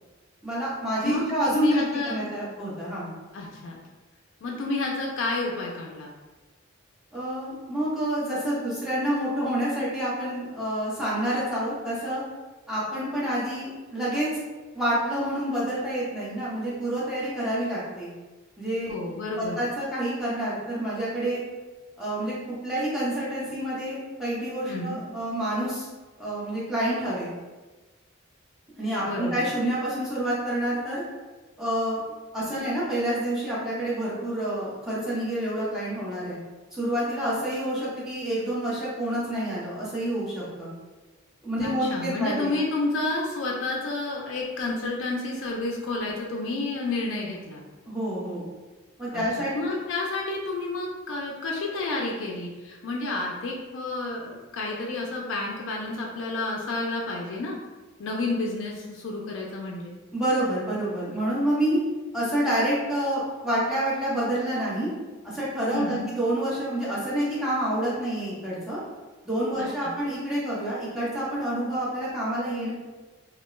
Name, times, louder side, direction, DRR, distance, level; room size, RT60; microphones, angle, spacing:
voice 1, 0.4-3.1 7.1-12.2 12.7-14.3 14.7-18.1 18.6-18.9 19.4-21.4 22.0-22.3 22.6-25.9 26.2-27.3 28.8-31.0 31.6-32.0 32.3-36.4 36.7-40.7 41.4-42.5 47.9-48.4 49.0-49.5 60.1-61.8 62.1-64.9 65.3-68.8 69.2-72.7, right 1 dB, 5° right, -9 dB, 0.8 m, -28 dB
voice 2, 1.0-2.3 3.3-3.8 4.4-6.1 18.9-19.6 24.7-25.0 29.0-29.4 41.6-47.6 49.1-49.2 49.5-57.6 58.0-59.9 65.7-66.1 69.6-69.9, left 2 dB, 65° left, -1 dB, 0.4 m, -30 dB
2.3 x 2.1 x 3.0 m, 1.2 s
head